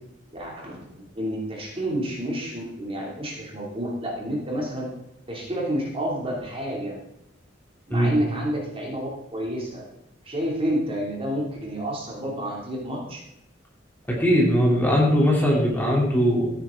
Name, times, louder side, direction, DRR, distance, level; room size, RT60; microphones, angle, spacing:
voice 1, 0.3-4.9 5.3-7.0 7.9-9.9 10.2-13.2, equal, 30° right, -2 dB, 2.7 m, -29 dB
voice 2, 14.1-16.5, equal, 10° left, -3 dB, 3.1 m, -20 dB
14.0 x 9.6 x 3.7 m, 0.81 s
head